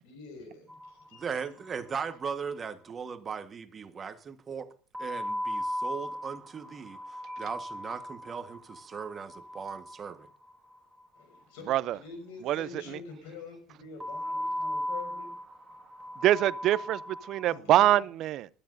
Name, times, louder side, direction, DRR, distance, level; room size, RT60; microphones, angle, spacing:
voice 1, 0.0-1.2 11.1-15.5 16.0-16.3 17.4-18.1, left 5 dB, 85° left, 5.5 m, -46 dB
sound 1, 0.7-1.7 1.9-2.0 2.3-2.4 4.9-11.1 14.0-17.6, equal, 15° right, 3.0 m, -37 dB
voice 2, 1.1-4.7 5.0-10.3, right 6 dB, 30° right, 1.3 m, -38 dB
voice 3, 12.4-13.0 16.2-18.5, right 13 dB, 55° right, 0.5 m, -25 dB
20.0 x 12.0 x 2.6 m
supercardioid pair, 115°, 0 cm